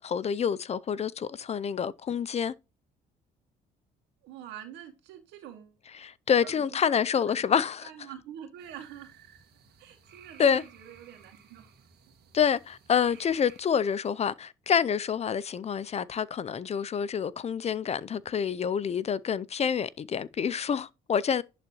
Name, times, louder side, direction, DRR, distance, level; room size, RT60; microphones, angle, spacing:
voice 1, 0.0-2.5 6.0-7.9 10.4-10.6 12.3-21.4, left 7 dB, 40° left, 0.5 m, -27 dB
voice 2, 4.2-5.8 6.4-6.8 7.3-7.4 7.8-9.1 9.8-11.7 13.1-13.2, right 10 dB, 80° right, 2.2 m, -46 dB
sound 1, 8.6-13.6, right 7 dB, 65° right, 2.1 m, -56 dB
11.0 x 3.9 x 3.0 m
supercardioid pair, 75°, 18 cm